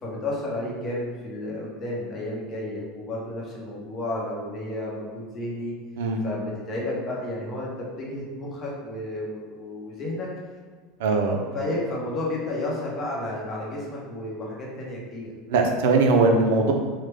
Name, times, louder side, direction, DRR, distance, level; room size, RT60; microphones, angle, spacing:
voice 1, 0.0-5.7 6.2-10.3 11.5-15.3, left 1 dB, 25° left, -4 dB, 0.7 m, -32 dB
voice 2, 11.0-11.4 15.5-16.7, right 3 dB, 85° right, 3 dB, 0.4 m, -20 dB
3.2 x 2.1 x 3.3 m, 1.5 s
supercardioid pair, 155°, 0 cm